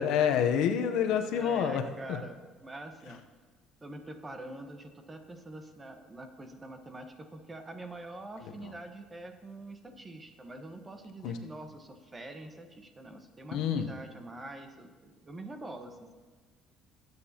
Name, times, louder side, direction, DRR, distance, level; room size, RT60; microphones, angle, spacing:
voice 1, 0.0-1.8 2.1-2.2 11.2-11.4 13.5-13.9, left 8 dB, 80° left, 6 dB, 0.8 m, -27 dB
voice 2, 1.3-3.2 3.8-16.1, right 2 dB, 20° right, 6 dB, 1.1 m, -45 dB
19.0 x 8.2 x 2.9 m, 1.4 s
cardioid pair, 115°, 0 cm